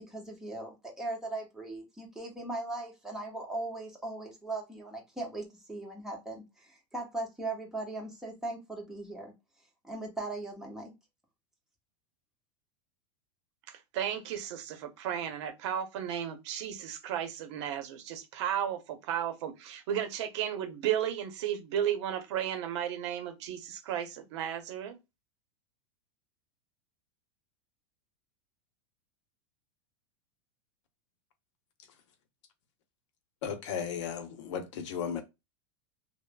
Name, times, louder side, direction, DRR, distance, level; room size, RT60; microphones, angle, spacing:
voice 1, 0.0-9.3 9.8-10.9, right 2 dB, 5° right, 1.0 m, -39 dB
voice 2, 13.7-25.0, right 10 dB, 65° right, 0.7 m, -34 dB
voice 3, 33.4-35.2, left 7 dB, 70° left, 0.7 m, -35 dB
3.1 x 2.1 x 2.3 m
supercardioid pair, 135°, 16 cm